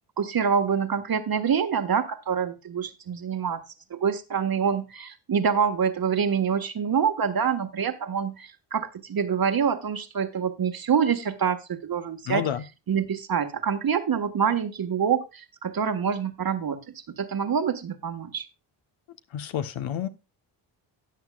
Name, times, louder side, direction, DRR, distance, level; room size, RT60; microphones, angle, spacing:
voice 1, 0.2-3.6 3.9-12.4 12.9-16.8 17.2-18.5, right 7 dB, 45° right, 1.5 m, -26 dB
voice 2, 12.3-12.6 19.3-20.1, left 9 dB, 70° left, 1.2 m, -29 dB
14.0 x 9.5 x 2.3 m
cardioid pair, 80°, 49 cm